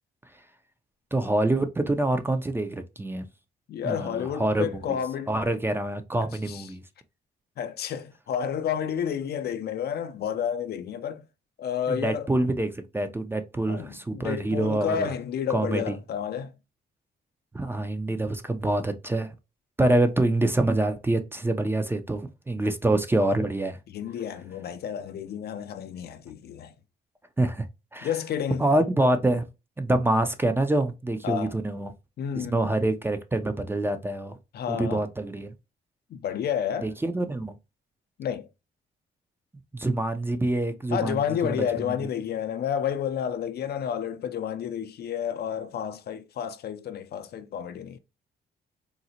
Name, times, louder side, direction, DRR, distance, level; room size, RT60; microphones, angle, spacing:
voice 1, 1.1-3.3 3.8-5.0 5.3-6.8 11.9-15.1 15.5-16.0 17.5-19.3 19.8-23.8 27.4-27.7 27.9-28.1 28.6-29.5 29.8-31.9 32.3-34.4 34.7-35.5 36.8-37.5 39.7-41.2 41.5-41.6, right 2 dB, 10° right, 0.4 m, -26 dB
voice 2, 3.7-5.3 6.5-6.7 7.6-11.3 11.6-12.3 13.7-16.5 23.9-26.7 28.0-28.7 31.2-31.5 32.2-32.6 34.5-35.0 36.1-36.9 38.2-38.5 40.9-48.0, left 8 dB, 55° left, 0.4 m, -30 dB
3.8 x 2.0 x 2.8 m
cardioid pair, 90°, 20 cm